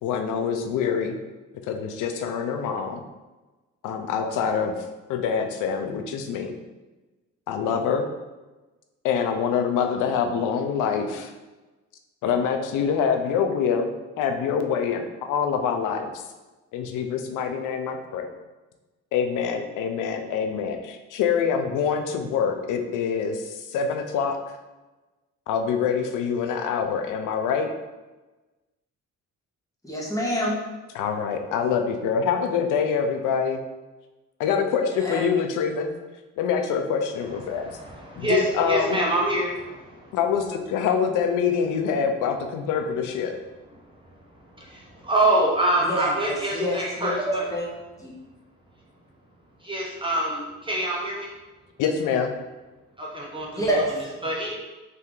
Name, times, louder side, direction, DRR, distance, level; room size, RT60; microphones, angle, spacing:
voice 1, 0.0-1.2 1.6-3.0 3.8-4.7 5.1-6.5 7.5-8.1 9.0-11.3 12.2-13.9 14.2-16.2 16.7-18.3 19.1-24.6 25.5-27.7 30.9-33.6 34.4-35.9 36.4-37.8 38.2-39.0 40.1-43.3 51.8-52.3, left 6 dB, 85° left, 6 dB, 0.5 m, -25 dB
voice 2, 29.8-30.6 34.9-35.2 45.8-47.7 48.0-48.2 53.5-54.1, equal, 10° left, -4 dB, 1.2 m, -27 dB
voice 3, 37.5-40.2 44.6-47.5 49.6-51.3 53.0-53.6 54.2-54.5, right 1 dB, 15° right, -3 dB, 0.8 m, -26 dB
3.3 x 2.8 x 3.7 m, 1.2 s
cardioid pair, 90°, 30 cm